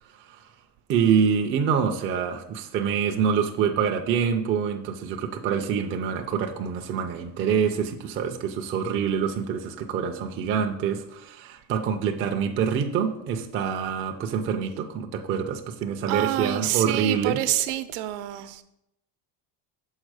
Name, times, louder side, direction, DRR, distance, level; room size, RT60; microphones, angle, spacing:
voice 1, 0.9-17.4, right 7 dB, 30° right, 0.3 m, -26 dB
voice 2, 16.1-18.6, right 14 dB, 70° right, 0.7 m, -27 dB
6.4 x 4.2 x 4.7 m
cardioid pair, 150°, 50 cm